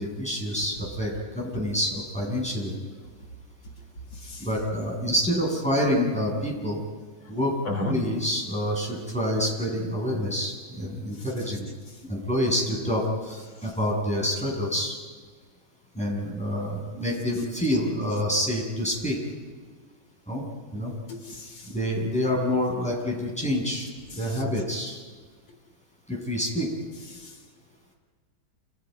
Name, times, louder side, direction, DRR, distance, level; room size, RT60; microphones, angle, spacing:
voice 1, 0.0-2.7 4.4-6.8 7.3-7.5 7.9-11.7 12.0-15.0 15.9-19.2 20.3-20.4 20.7-20.9 21.7-23.9 24.1-25.0 26.1-26.7, equal, 5° left, -3 dB, 7.9 m, -27 dB
voice 2, 4.1-4.5 7.7-8.0 21.1-21.7 24.2-24.4 27.1-27.3, left 1 dB, 90° left, 2 dB, 4.2 m, -33 dB
29.5 x 29.0 x 5.4 m, 1.5 s
omnidirectional pair, 2.1 m